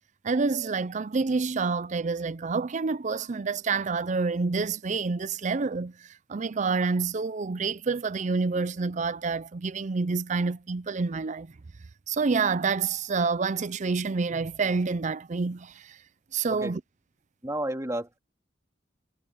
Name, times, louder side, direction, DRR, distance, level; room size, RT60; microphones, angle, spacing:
voice 1, 0.2-11.6 12.1-16.0 16.3-16.8, right 4 dB, 40° right, 0.5 m, -28 dB
voice 2, 16.5-16.8 17.4-18.2, right 1 dB, 15° right, 3.1 m, -32 dB
head